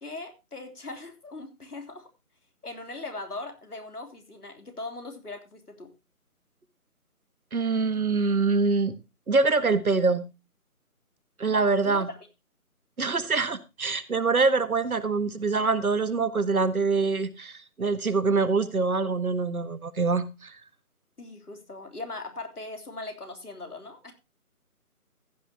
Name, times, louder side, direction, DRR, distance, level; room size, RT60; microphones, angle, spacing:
voice 1, 0.0-2.1 2.6-5.9 11.8-12.2 21.2-24.1, left 2 dB, 85° left, 3.4 m, -40 dB
voice 2, 7.5-8.9 9.3-10.2 11.4-12.1 13.0-20.6, right 4 dB, 70° right, 1.6 m, -25 dB
15.0 x 10.5 x 2.8 m
figure-of-eight pair, 165°, 45 cm